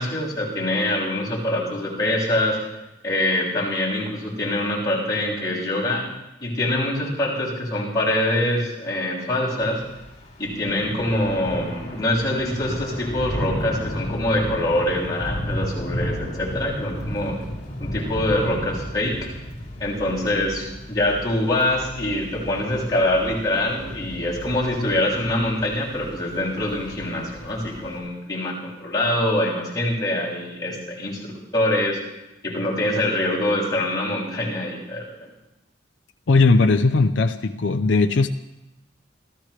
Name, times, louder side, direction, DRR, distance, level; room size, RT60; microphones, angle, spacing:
voice 1, 0.0-2.6 3.0-6.1 6.4-9.8 10.4-17.4 17.8-19.2 19.8-32.0 32.4-35.3, left 1 dB, 20° left, -6 dB, 6.8 m, -24 dB
Thunder / Rain, 9.6-28.0, equal, 40° left, 4.3 m, -33 dB
voice 2, 36.3-38.3, left 3 dB, 75° left, 7 dB, 0.6 m, -18 dB
27.0 x 15.5 x 3.3 m, 0.96 s
head